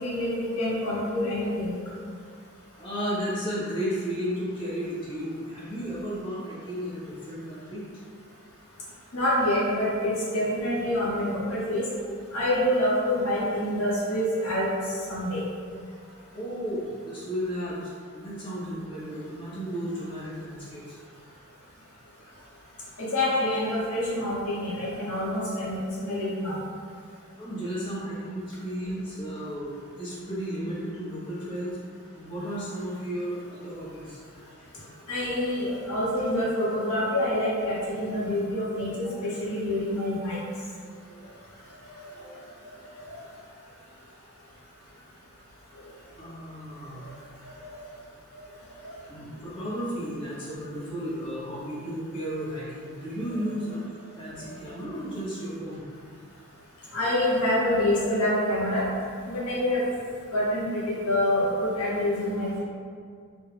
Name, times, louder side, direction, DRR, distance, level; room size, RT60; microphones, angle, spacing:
voice 1, 0.0-1.7 9.1-11.8 12.3-14.7 15.1-15.4 23.0-26.5 35.1-40.4 47.6-47.8 56.9-58.9 59.3-59.8 60.3-62.6, left 1 dB, 75° left, -7 dB, 0.7 m, -26 dB
voice 2, 2.8-7.8 16.3-21.0 27.4-31.8 32.1-34.2 40.8-41.4 42.1-42.5 46.2-47.0 49.1-53.8 54.1-55.9, equal, 25° left, -11 dB, 0.8 m, -34 dB
2.3 x 2.0 x 3.2 m, 2.1 s
head